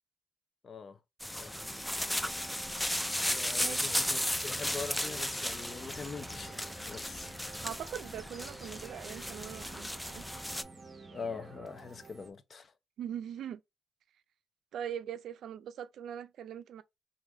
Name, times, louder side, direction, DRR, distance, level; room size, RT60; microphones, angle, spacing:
voice 1, 0.6-1.0 1.3-1.6 3.2-7.3 11.1-12.7, left 5 dB, 45° left, 0.6 m, -43 dB
sound 1, 1.2-10.6, left 1 dB, 5° left, 0.4 m, -35 dB
sound 2, 1.5-12.3, right 3 dB, 30° right, 0.8 m, -51 dB
voice 2, 3.6-4.0 7.6-10.3 13.0-13.6 14.7-16.8, right 9 dB, 70° right, 0.4 m, -41 dB
3.3 x 2.5 x 3.5 m
cardioid pair, 90°, 0 cm